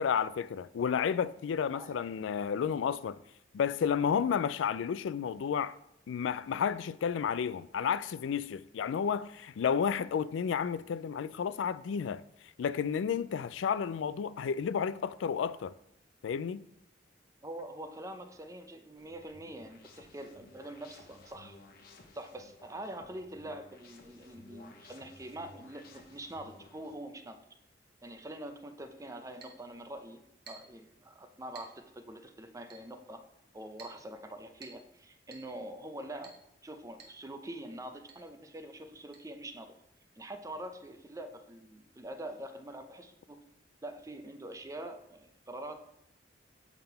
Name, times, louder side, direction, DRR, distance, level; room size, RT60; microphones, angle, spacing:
voice 1, 0.0-3.2 3.5-5.7 6.1-12.2 12.6-15.7 16.2-16.7, left 7 dB, 90° left, 0.3 m, -31 dB
voice 2, 17.4-21.6 22.1-27.4 28.0-33.2 33.5-36.4 36.6-39.8 40.2-43.4 43.8-45.7, right 1 dB, 15° right, 0.6 m, -44 dB
sound 1, 19.0-27.0, left 2 dB, 55° left, 1.0 m, -56 dB
Chink clink, 29.4-29.6 30.5-30.8 31.6-31.8 32.7-32.9 33.8-34.0 34.6-34.9 35.3-35.5 36.2-36.4 37.0-37.2 37.5-37.6 38.1-38.2 39.1-39.2, right 4 dB, 60° right, 1.4 m, -52 dB
7.7 x 3.6 x 5.6 m
head